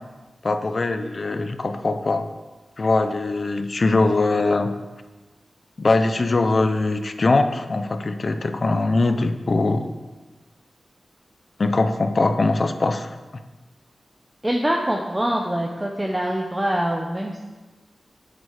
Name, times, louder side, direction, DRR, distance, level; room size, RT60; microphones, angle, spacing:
voice 1, 0.4-2.3 2.8-4.7 5.8-9.9 11.6-13.1, left 3 dB, 40° left, 8 dB, 1.0 m, -21 dB
voice 2, 14.4-17.5, right 1 dB, 10° right, 0 dB, 1.0 m, -24 dB
10.5 x 8.0 x 8.2 m, 1.2 s
wide cardioid pair, 125°, 0 cm